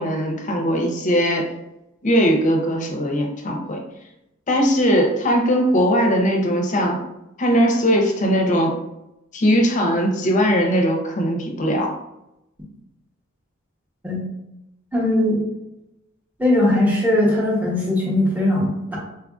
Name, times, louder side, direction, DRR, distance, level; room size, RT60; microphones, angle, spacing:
voice 1, 0.0-1.5 2.0-3.8 4.5-7.0 7.4-8.8 9.3-11.9, equal, 35° left, 1 dB, 0.6 m, -19 dB
voice 2, 14.9-15.4 16.4-19.0, left 1 dB, 10° right, -5 dB, 0.9 m, -19 dB
4.4 x 2.4 x 2.4 m, 0.87 s
head